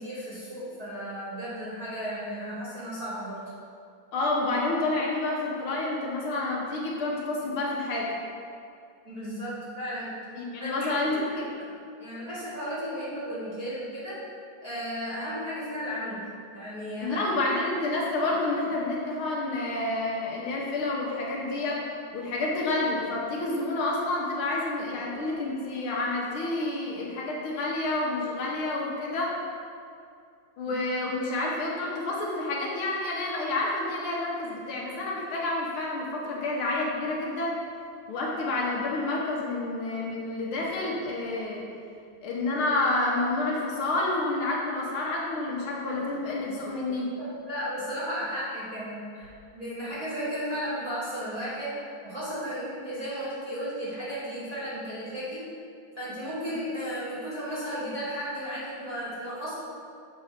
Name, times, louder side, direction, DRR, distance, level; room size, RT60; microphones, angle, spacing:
voice 1, 0.0-3.4 9.0-10.2 10.6-11.4 12.0-14.2 14.6-16.3 16.5-17.2 47.2-55.5 55.9-59.5, equal, 20° right, -11 dB, 1.7 m, -34 dB
voice 2, 4.1-8.1 10.4-11.5 17.0-29.4 30.6-37.6 38.1-41.7 42.2-47.2 56.4-56.6, left 2 dB, 80° left, -3 dB, 1.9 m, -29 dB
6.8 x 4.1 x 5.0 m, 2.4 s
omnidirectional pair, 2.3 m